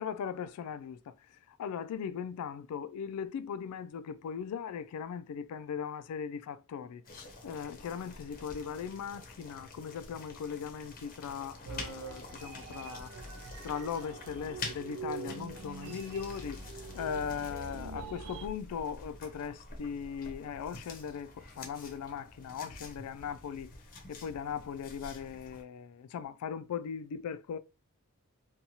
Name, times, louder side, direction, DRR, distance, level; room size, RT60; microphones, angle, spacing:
voice 1, 0.0-7.0 7.4-13.1 13.6-16.6 16.9-23.7 24.1-27.6, left 7 dB, 90° left, 0.3 m, -39 dB
sound 1, 7.0-25.6, left 3 dB, 40° left, 0.6 m, -48 dB
sound 2, 11.6-18.5, right 4 dB, 85° right, 0.5 m, -44 dB
2.7 x 2.3 x 2.7 m
head